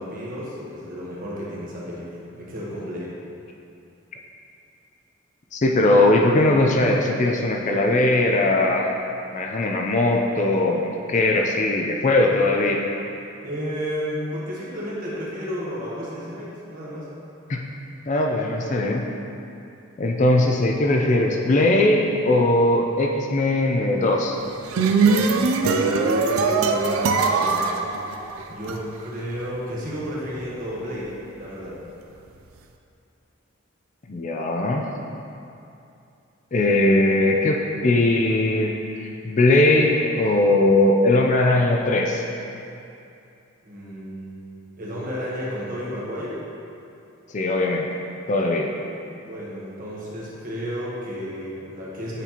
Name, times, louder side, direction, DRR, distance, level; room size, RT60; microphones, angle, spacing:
voice 1, 0.0-3.1 13.4-17.1 25.6-27.9 28.5-31.8 43.6-44.5 44.8-46.4 49.2-52.2, equal, 40° right, -6 dB, 1.1 m, -32 dB
voice 2, 5.5-9.0 9.3-12.8 17.5-17.6 18.1-19.1 20.0-24.4 34.1-34.8 36.5-42.2 47.3-47.9 48.3-48.7, left 2 dB, 35° left, 1 dB, 0.4 m, -20 dB
sound 1, 24.4-28.8, right 4 dB, 85° right, 0.4 m, -21 dB
8.1 x 4.2 x 2.9 m, 2.7 s
head